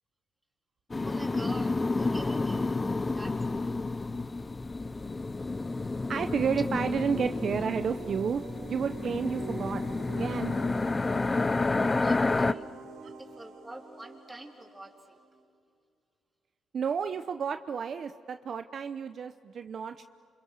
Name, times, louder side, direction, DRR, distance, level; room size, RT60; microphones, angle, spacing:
sound 1, 0.9-12.5, left 3 dB, 25° left, 0.7 m, -30 dB
voice 1, 1.0-2.7 3.2-3.9 11.9-12.7 13.2-14.9, right 1 dB, 10° right, 2 dB, 3.8 m, -46 dB
voice 2, 6.1-8.4 8.7-9.8 10.1-10.6 13.0-13.1 16.7-20.0, right 6 dB, 55° right, 9 dB, 0.8 m, -31 dB
sound 2, 7.1-15.4, right 5 dB, 90° right, 3.6 m, -45 dB
29.5 x 27.5 x 6.7 m, 2.3 s
cardioid pair, 90°, 0 cm